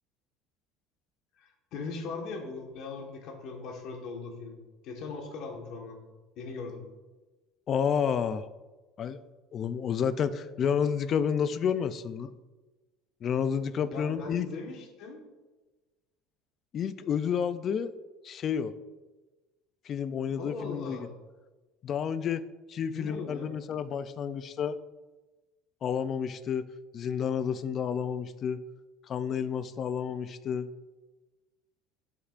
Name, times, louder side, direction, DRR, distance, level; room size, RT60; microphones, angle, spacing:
voice 1, 1.4-4.6 4.8-6.0 6.4-6.8 13.9-15.3 20.4-21.1 22.9-23.5, left 4 dB, 50° left, 2 dB, 1.4 m, -39 dB
voice 2, 7.7-8.4 9.0-9.2 9.5-12.3 13.2-14.5 16.7-17.9 18.2-18.7 19.9-21.1 21.8-22.4 22.7-24.8 25.8-26.7 26.9-28.6 29.1-30.7, left 7 dB, 30° left, 13 dB, 0.3 m, -30 dB
10.5 x 6.6 x 2.5 m, 1.2 s
cardioid pair, 165°, 0 cm